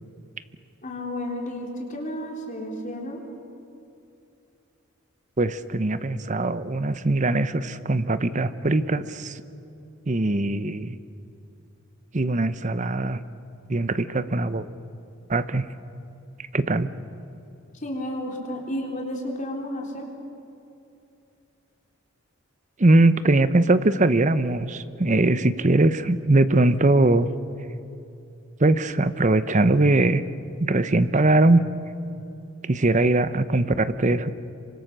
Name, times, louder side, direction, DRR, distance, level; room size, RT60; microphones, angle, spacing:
voice 1, 0.8-3.2 17.8-20.1, left 1 dB, 40° left, 0 dB, 3.8 m, -32 dB
voice 2, 5.4-9.4 10.1-11.0 12.1-13.2 13.7-14.7 15.3-15.7 16.5-16.9 22.8-27.3 28.6-30.2 30.6-31.6 32.7-34.3, right 2 dB, 35° right, 13 dB, 0.8 m, -21 dB
27.0 x 25.0 x 6.8 m, 2.7 s
head